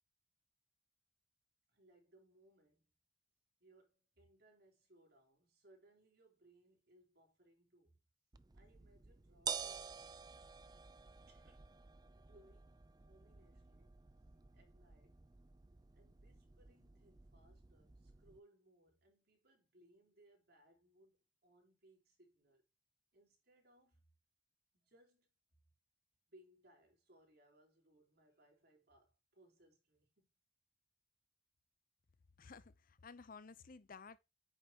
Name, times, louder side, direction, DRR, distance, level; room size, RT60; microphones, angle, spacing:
voice 1, 1.7-2.9 3.6-8.0 8.5-9.9 11.3-12.8 13.0-13.9 14.3-15.2 15.9-22.6 23.1-24.1 24.7-25.3 26.3-30.3, right 1 dB, 55° right, 4.1 m, -69 dB
sound 1, 8.3-18.4, right 6 dB, 20° right, 0.4 m, -50 dB
voice 2, 32.4-34.2, left 5 dB, 50° left, 0.7 m, -55 dB
9.0 x 6.7 x 2.9 m
head